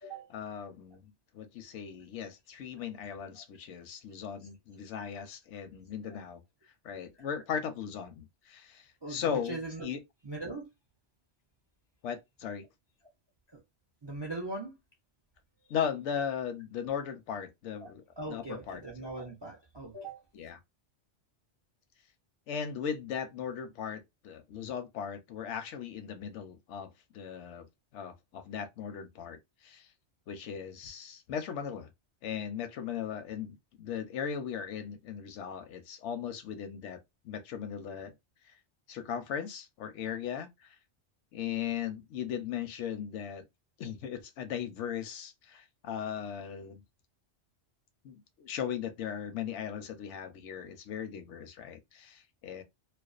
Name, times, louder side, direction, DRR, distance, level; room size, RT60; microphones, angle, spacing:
voice 1, 0.3-6.4 6.8-10.0 12.0-12.7 15.7-18.0 18.3-18.8 20.3-20.6 22.5-27.7 27.9-29.9 30.3-31.9 32.2-37.0 37.2-38.1 38.9-40.8 41.3-43.4 43.8-46.8 48.0-52.6, left 8 dB, 85° left, 0.9 m, -38 dB
voice 2, 9.0-9.9 10.2-10.7 13.5-13.6 14.0-14.8 17.8-17.9 18.2-20.2, right 2 dB, 45° right, 0.3 m, -40 dB
2.4 x 2.2 x 2.3 m
omnidirectional pair, 1.2 m